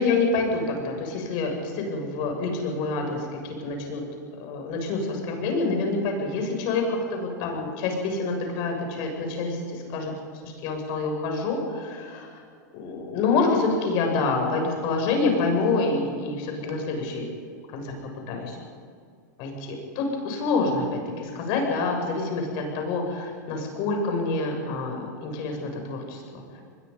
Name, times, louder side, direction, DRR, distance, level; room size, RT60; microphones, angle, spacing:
voice 1, 0.0-4.0 4.4-10.1 10.4-12.4 12.7-17.3 17.7-17.9 18.3-18.6 19.4-26.6, left 3 dB, 50° left, 2 dB, 7.3 m, -27 dB
25.0 x 21.5 x 5.5 m, 2.1 s
hypercardioid pair, 125°, 10 cm